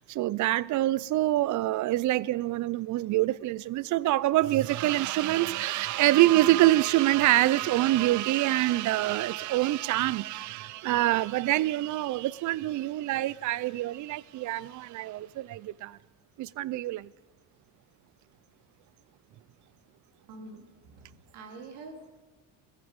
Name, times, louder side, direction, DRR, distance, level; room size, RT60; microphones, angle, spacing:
voice 1, 0.0-16.0 16.4-17.1, right 16 dB, 50° right, 0.5 m, -26 dB
voice 2, 20.3-22.2, right 3 dB, 80° right, 2.9 m, -46 dB
18.0 x 14.5 x 5.2 m
supercardioid pair, 100°, 39 cm